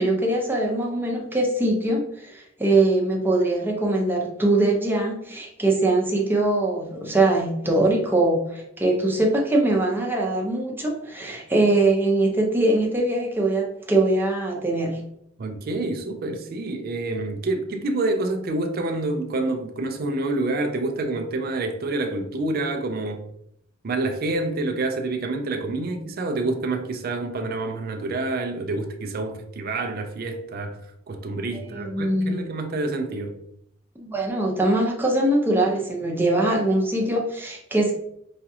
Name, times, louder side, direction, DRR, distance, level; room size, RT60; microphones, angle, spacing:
voice 1, 0.0-15.0 31.7-32.4 34.0-37.9, right 2 dB, 10° right, 0.7 m, -22 dB
voice 2, 15.4-23.2 23.8-30.8 31.1-33.4, right 2 dB, 50° right, 0.4 m, -27 dB
5.0 x 2.4 x 2.7 m
head